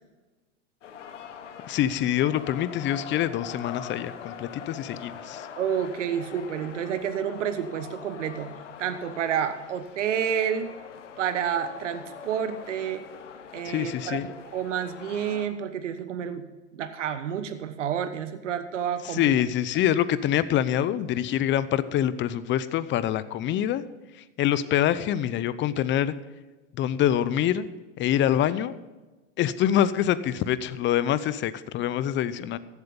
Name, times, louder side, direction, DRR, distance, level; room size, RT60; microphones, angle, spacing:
sound 1, 0.8-15.5, left 7 dB, 90° left, 1.3 m, -43 dB
voice 1, 1.7-5.5 13.6-14.3 19.0-23.8 24.2-26.1 26.7-27.6 28.0-28.8 29.4-32.6, left 11 dB, 35° left, 15 dB, 0.7 m, -25 dB
voice 2, 5.6-8.5 8.8-10.7 11.2-13.0 13.5-16.4 16.7-19.3, right 8 dB, 85° right, 9 dB, 1.1 m, -29 dB
14.5 x 8.1 x 5.3 m, 1.2 s
hypercardioid pair, 110°, 35 cm